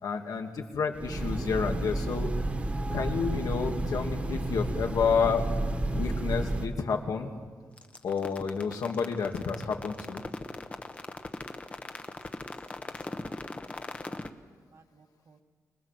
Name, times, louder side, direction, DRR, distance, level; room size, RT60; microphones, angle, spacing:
voice 1, 0.0-2.3 2.9-5.5 5.9-7.3 8.0-10.2, left 5 dB, 80° left, 3 dB, 2.4 m, -30 dB
Train, 0.9-6.7, right 1 dB, 20° right, 1.5 m, -31 dB
sound 1, 7.8-14.3, left 2 dB, 20° left, 1.1 m, -39 dB
voice 2, 12.0-12.5 12.9-13.4 13.7-14.4 14.7-15.4, right 4 dB, 50° right, 6 dB, 1.5 m, -62 dB
25.5 x 20.5 x 7.6 m, 1.5 s
wide cardioid pair, 180°, 6 cm